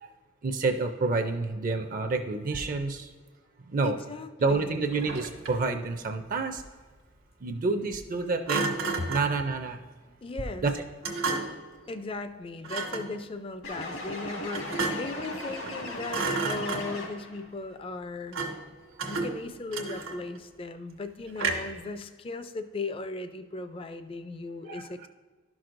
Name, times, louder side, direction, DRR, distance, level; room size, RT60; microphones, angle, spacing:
voice 1, 0.4-3.1 3.7-4.0 4.4-6.6 7.4-8.7 9.1-9.8 10.6-10.8 24.6-25.1, right 3 dB, 40° right, 7 dB, 0.4 m, -28 dB
voice 2, 3.8-4.8 10.2-10.7 11.9-18.4 19.1-25.1, left 3 dB, 25° left, 10 dB, 0.4 m, -37 dB
Thump thud, 4.9-5.7 8.5-9.4 11.0-11.7 12.6-13.1 14.5-15.2 15.6-15.8 16.1-17.1 18.3-18.7 19.0-20.4 21.4-21.8, right 3 dB, 80° right, 1.3 m, -32 dB
sound 1, 13.6-17.4, left 1 dB, 80° left, 1.7 m, -37 dB
12.0 x 6.0 x 2.5 m, 1.4 s
head